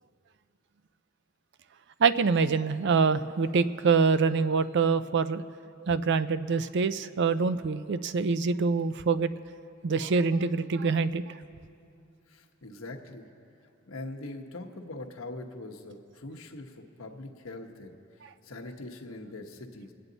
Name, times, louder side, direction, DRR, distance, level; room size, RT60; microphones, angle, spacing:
voice 1, 2.0-5.4 5.8-9.3 9.8-11.2, right 5 dB, 60° right, 13 dB, 0.4 m, -25 dB
voice 2, 12.3-13.3 13.9-18.0 18.4-19.9, left 2 dB, 90° left, 3 dB, 1.1 m, -42 dB
25.5 x 8.9 x 4.0 m, 2.5 s
head